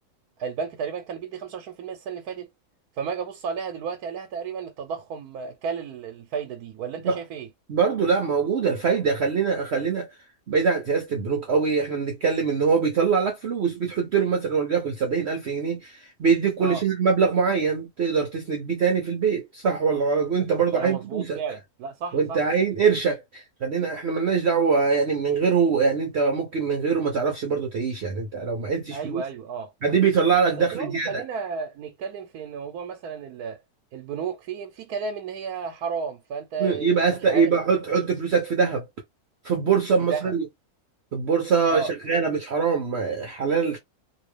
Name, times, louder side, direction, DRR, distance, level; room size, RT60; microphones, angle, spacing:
voice 1, 0.4-2.5 2.9-7.5 16.6-16.8 20.4-22.4 28.9-29.7 30.6-33.6 33.9-37.5 40.1-40.3 41.7-41.9, right 6 dB, 85° right, 1.2 m, -33 dB
voice 2, 7.7-10.1 10.5-21.4 22.1-29.2 29.8-31.2 36.6-38.9 39.4-40.4 41.1-43.8, right 5 dB, 55° right, 0.9 m, -23 dB
3.1 x 2.7 x 3.2 m
omnidirectional pair, 1.6 m